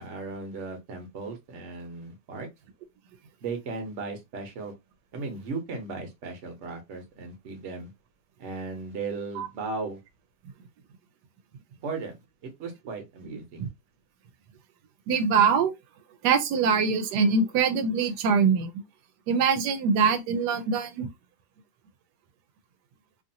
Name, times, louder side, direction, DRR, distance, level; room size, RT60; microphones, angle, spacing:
voice 1, 0.0-2.5 3.4-4.7 5.1-7.9 8.4-10.0 11.8-12.2 12.4-13.7, right 4 dB, 50° right, 1.1 m, -36 dB
voice 2, 15.1-15.7 16.2-18.7 19.3-21.1, right 5 dB, 90° right, 1.2 m, -23 dB
2.9 x 2.5 x 2.6 m
omnidirectional pair, 1.7 m